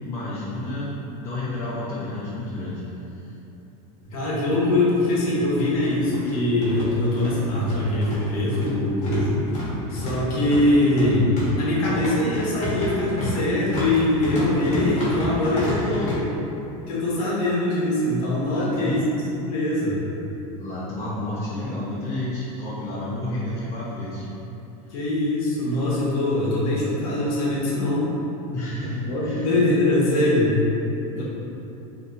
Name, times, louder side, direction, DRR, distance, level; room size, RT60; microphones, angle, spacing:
voice 1, 0.0-2.8 3.1-3.3 15.5-16.1 18.4-19.0 20.6-24.3 28.5-29.5 31.2-31.3, left 1 dB, 15° left, -11 dB, 0.6 m, -31 dB
voice 2, 4.1-9.4 9.9-16.2 16.9-19.0 19.3-20.0 24.9-28.1 29.0-30.6 31.2-31.3, left 1 dB, 85° left, -6 dB, 1.0 m, -22 dB
sound 1, 4.1-4.2 4.5-4.6 5.4-16.2, left 1 dB, 45° left, 1.2 m, -31 dB
3.4 x 2.7 x 2.6 m, 3.0 s
supercardioid pair, 145°, 18 cm